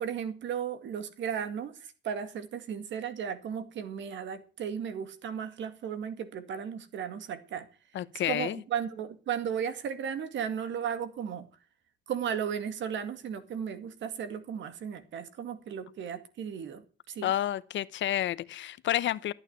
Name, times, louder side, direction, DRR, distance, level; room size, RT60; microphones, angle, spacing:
voice 1, 0.0-7.7 8.3-11.5 12.1-17.3, right 8 dB, 85° right, 2.1 m, -35 dB
voice 2, 7.9-8.6 17.2-19.3, left 12 dB, 80° left, 0.8 m, -30 dB
14.0 x 9.0 x 8.0 m
cardioid pair, 80°, 19 cm